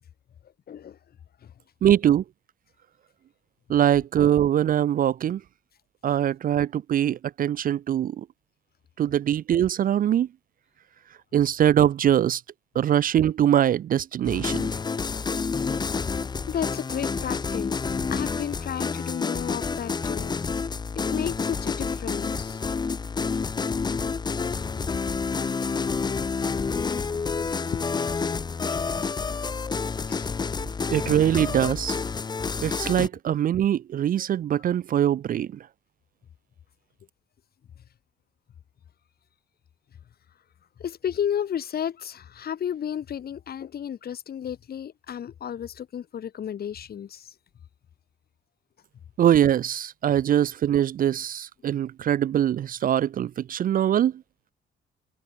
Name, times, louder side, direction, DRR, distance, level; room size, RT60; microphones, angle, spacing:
voice 1, 0.7-1.0 1.4-1.5 16.5-17.8 18.1-20.4 21.1-22.6 26.5-26.6 27.4-27.8 28.7-28.8 30.1-30.3 40.8-47.3, left 9 dB, 50° left, 1.0 m, -33 dB
voice 2, 1.8-2.2 3.7-5.4 6.0-8.3 9.0-10.3 11.3-12.4 12.8-14.7 30.9-32.0 32.6-35.7 49.2-54.1, right 10 dB, 45° right, 0.4 m, -22 dB
sound 1, 14.2-33.1, left 5 dB, 20° left, 0.5 m, -29 dB
cardioid pair, 90°, 20 cm